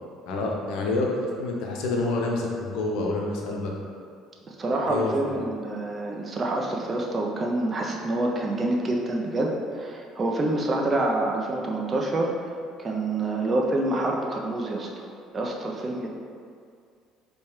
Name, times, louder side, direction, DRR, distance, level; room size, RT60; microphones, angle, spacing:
voice 1, 0.3-3.7 4.8-5.4, left 2 dB, 70° left, -1 dB, 0.5 m, -28 dB
voice 2, 4.5-12.3 12.8-15.1 15.3-16.1, right 2 dB, 35° right, -1 dB, 0.4 m, -27 dB
4.4 x 2.2 x 3.1 m, 2.2 s
hypercardioid pair, 60°, 0 cm